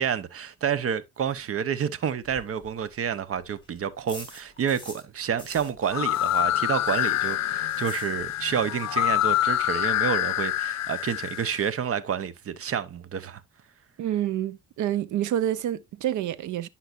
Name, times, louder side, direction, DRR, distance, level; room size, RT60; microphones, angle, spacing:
voice 1, 0.0-13.4, right 8 dB, 50° right, 0.9 m, -29 dB
sound 1, 2.2-5.1 5.4-8.6 8.8-8.9 9.3-9.4 9.5-10.0, left 2 dB, 15° left, 5.2 m, -47 dB
sound 2, 5.8-11.6, left 14 dB, 60° left, 0.6 m, -26 dB
voice 2, 14.0-16.7, right 11 dB, 75° right, 0.7 m, -28 dB
10.0 x 5.7 x 2.5 m
cardioid pair, 90°, 30 cm